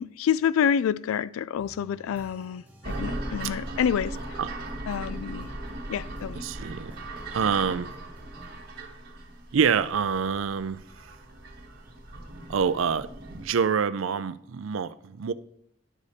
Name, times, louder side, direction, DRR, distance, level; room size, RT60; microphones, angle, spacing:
voice 1, 0.0-4.4 4.9-5.5 5.9-6.4, left 8 dB, 85° left, 0.3 m, -28 dB
sound 1, 1.5-8.6, equal, 10° right, 1.1 m, -52 dB
sound 2, 2.8-13.5, right 1 dB, 45° right, 1.3 m, -38 dB
voice 2, 6.4-7.0 7.3-7.9 9.5-11.1 12.5-15.3, right 6 dB, 75° right, 0.4 m, -27 dB
11.0 x 5.0 x 4.1 m
head